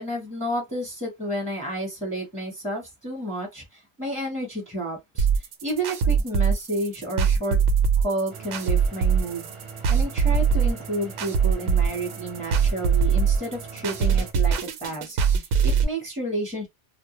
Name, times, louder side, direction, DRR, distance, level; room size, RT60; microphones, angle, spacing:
voice 1, 0.0-7.6 8.0-9.5 9.9-16.7, right 1 dB, 5° left, 0.9 m, -31 dB
sound 1, 5.2-15.8, right 6 dB, 75° right, 0.9 m, -22 dB
sound 2, 8.3-14.3, right 5 dB, 30° right, 0.7 m, -42 dB
2.1 x 2.1 x 3.0 m
omnidirectional pair, 1.3 m